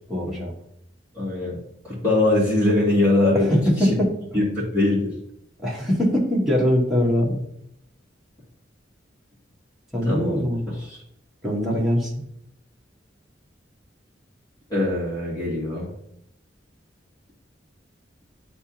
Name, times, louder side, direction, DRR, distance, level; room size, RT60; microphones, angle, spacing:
voice 1, 0.1-0.5 3.3-4.1 5.6-7.4 9.9-10.6 11.4-12.1, equal, ahead, -5 dB, 1.4 m, -22 dB
voice 2, 1.1-1.6 1.8-3.6 4.3-4.4 4.7-5.1 10.1-10.4 10.8-11.0 14.7-15.9, left 2 dB, 20° left, -10 dB, 2.2 m, -21 dB
10.5 x 3.5 x 2.8 m, 0.74 s
head